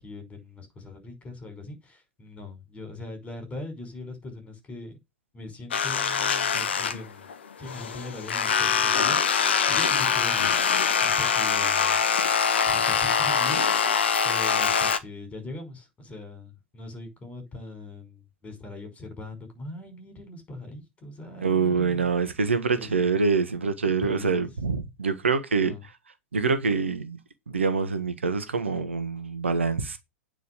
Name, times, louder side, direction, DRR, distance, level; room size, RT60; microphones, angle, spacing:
voice 1, 0.0-5.0 5.3-7.2 7.6-9.2 9.7-10.6 11.0-12.0 12.7-13.6 14.2-22.1 22.7-23.1 23.9-24.5 25.6-25.8, left 2 dB, 20° left, 5.4 m, -41 dB
sound 1, 5.7-7.3 7.6-15.0, left 6 dB, 65° left, 1.2 m, -23 dB
voice 2, 21.4-25.7 26.3-27.2 27.5-30.0, right 5 dB, 75° right, 1.3 m, -25 dB
9.5 x 4.9 x 6.6 m
figure-of-eight pair, 90°, 6 cm